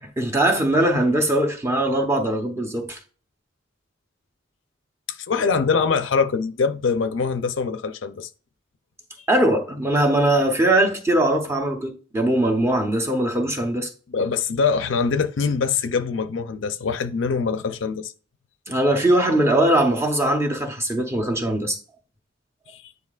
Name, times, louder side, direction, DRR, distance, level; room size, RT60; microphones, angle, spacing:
voice 1, 0.0-3.0 9.3-13.9 18.7-21.8, right 1 dB, 15° right, 0.8 m, -21 dB
voice 2, 5.1-8.3 14.1-18.1 22.7-22.9, left 5 dB, 70° left, 0.5 m, -23 dB
9.5 x 4.1 x 2.4 m
head